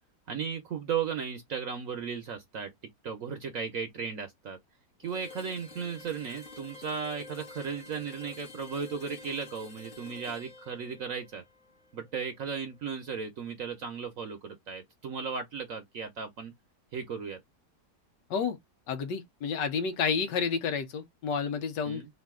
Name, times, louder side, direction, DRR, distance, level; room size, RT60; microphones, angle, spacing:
voice 1, 0.3-2.7 3.0-4.6 5.0-11.4 11.9-16.5 16.9-17.4 21.8-22.1, right 6 dB, 60° right, 1.0 m, -36 dB
sound 1, 5.0-12.9, left 3 dB, 30° left, 1.1 m, -49 dB
voice 2, 18.9-22.0, left 6 dB, 85° left, 1.5 m, -30 dB
3.9 x 2.6 x 3.6 m
omnidirectional pair, 1.8 m